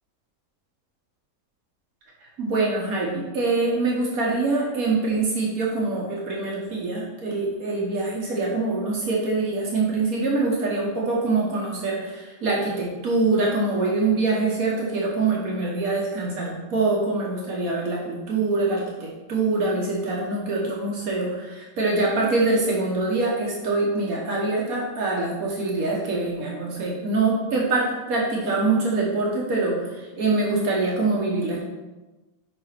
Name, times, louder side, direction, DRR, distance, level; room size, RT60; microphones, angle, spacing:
voice 1, 2.4-31.6, right 3 dB, 80° right, -3 dB, 1.7 m, -24 dB
5.5 x 5.2 x 5.7 m, 1.1 s
omnidirectional pair, 1.5 m